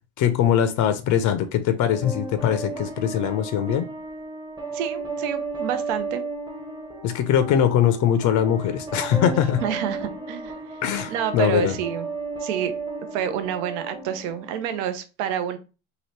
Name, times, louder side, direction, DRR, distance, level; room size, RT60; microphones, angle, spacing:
voice 1, 0.2-3.9 7.0-9.6 10.8-11.7, left 9 dB, 55° left, 10 dB, 0.5 m, -21 dB
sound 1, 1.8-14.8, right 3 dB, 10° right, 0.7 m, -34 dB
voice 2, 4.7-6.2 9.6-10.6 11.1-12.1 12.4-12.7 13.1-15.6, right 9 dB, 80° right, 10 dB, 0.6 m, -28 dB
2.8 x 2.8 x 3.1 m, 0.32 s
supercardioid pair, 95°, 37 cm